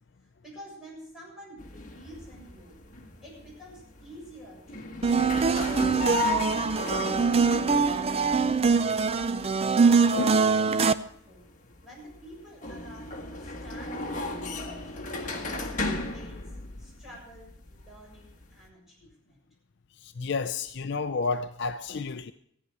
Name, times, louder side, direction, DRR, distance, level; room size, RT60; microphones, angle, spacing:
voice 1, 0.4-2.8 3.2-8.4 9.0-11.5 11.8-14.5 14.8-15.8 16.1-16.5 16.8-19.4, equal, ahead, 7.1 m, -49 dB
sound 1, 1.6-18.7, left 1 dB, 40° left, 1.4 m, -36 dB
sound 2, 5.0-10.9, right 5 dB, 30° right, 0.4 m, -23 dB
voice 2, 20.2-22.3, left 4 dB, 55° left, 0.5 m, -30 dB
14.5 x 9.7 x 6.5 m
head